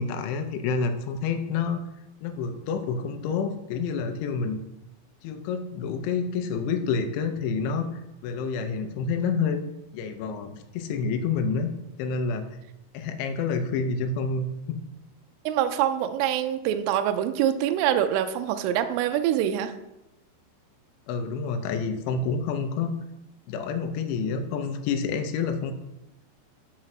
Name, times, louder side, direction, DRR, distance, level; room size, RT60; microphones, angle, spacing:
voice 1, 0.0-1.8 2.2-4.6 5.2-7.9 8.2-9.6 9.9-11.7 12.0-12.5 12.9-14.8 21.1-22.9 23.5-25.7, left 5 dB, 80° left, 7 dB, 2.9 m, -28 dB
voice 2, 15.5-19.7, right 10 dB, 85° right, 8 dB, 3.1 m, -25 dB
6.5 x 5.9 x 5.8 m, 0.89 s
omnidirectional pair, 5.7 m